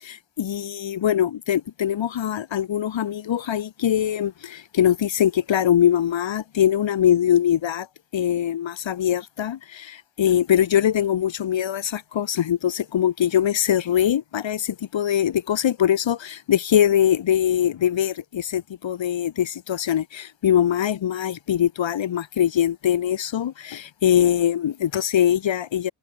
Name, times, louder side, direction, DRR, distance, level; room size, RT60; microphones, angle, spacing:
voice 1, 0.0-7.9 8.1-25.9, left 10 dB, 70° left, 2.0 m, -22 dB
wide cardioid pair, 115°, 47 cm